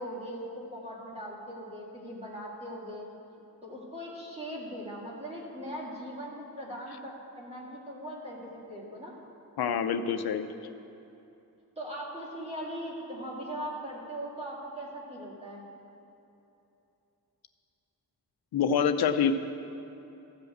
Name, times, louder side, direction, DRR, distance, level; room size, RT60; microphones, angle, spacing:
voice 1, 0.0-3.1 3.6-9.1 11.8-15.6, equal, 15° right, -5 dB, 1.9 m, -40 dB
voice 2, 9.6-10.5 18.5-19.3, left 7 dB, 80° left, 9 dB, 0.7 m, -26 dB
14.0 x 5.2 x 8.0 m, 2.9 s
wide cardioid pair, 180°, 37 cm